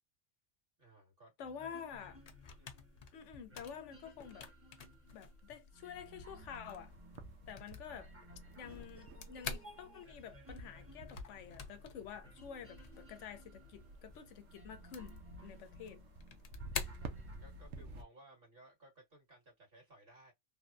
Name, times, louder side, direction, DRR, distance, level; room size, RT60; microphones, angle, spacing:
voice 1, 0.8-1.3 2.6-2.8 16.5-20.3, right 1 dB, 50° right, 1.9 m, -61 dB
voice 2, 1.4-2.2 3.1-4.5 5.1-6.9 7.5-8.1 8.6-15.1 15.4-16.0, left 7 dB, 80° left, 0.9 m, -49 dB
sound 1, 1.4-17.7, right 1 dB, 10° right, 1.0 m, -60 dB
sound 2, 1.8-17.8, left 5 dB, 50° left, 0.5 m, -50 dB
sound 3, 6.1-18.0, right 2 dB, 75° right, 0.9 m, -53 dB
3.3 x 2.1 x 2.4 m
omnidirectional pair, 1.2 m